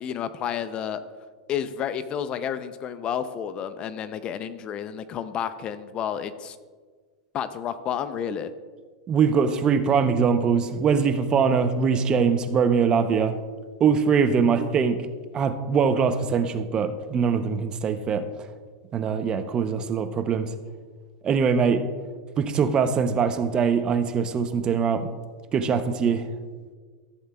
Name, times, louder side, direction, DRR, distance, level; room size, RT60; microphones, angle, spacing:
voice 1, 0.0-1.0 1.5-6.6 7.3-8.5, left 8 dB, 30° left, 12 dB, 0.5 m, -30 dB
voice 2, 9.1-13.4 13.8-15.1 15.3-18.3 18.9-20.5 21.2-21.9 22.4-25.1 25.5-26.3, right 6 dB, 25° right, 10 dB, 0.6 m, -22 dB
14.5 x 7.9 x 2.3 m, 1.5 s
hypercardioid pair, 125°, 3 cm